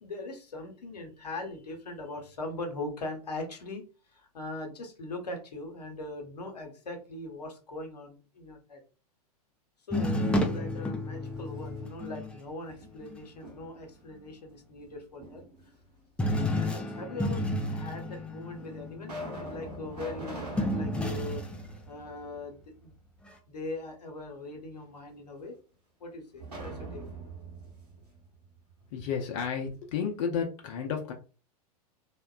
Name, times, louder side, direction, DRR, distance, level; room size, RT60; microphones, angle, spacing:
voice 1, 0.0-3.8 4.1-8.8 9.9-15.4 16.6-19.1 19.5-21.4 21.9-22.9 23.5-25.6 26.0-27.0, left 2 dB, 85° left, 3 dB, 0.8 m, -40 dB
sound 1, 9.9-12.4 13.0-13.2 16.2-21.8 23.3-23.4, left 1 dB, 5° left, 0.4 m, -31 dB
sound 2, 11.3-12.2 12.7-13.9 15.2-16.0 16.9-17.0 17.9-18.0 18.5-22.6 23.0-23.1 26.4-29.2, right 2 dB, 85° right, 1.0 m, -43 dB
voice 2, 28.9-31.1, left 7 dB, 60° left, 2 dB, 0.5 m, -32 dB
2.8 x 2.1 x 2.3 m, 0.35 s
hypercardioid pair, 95°, 20 cm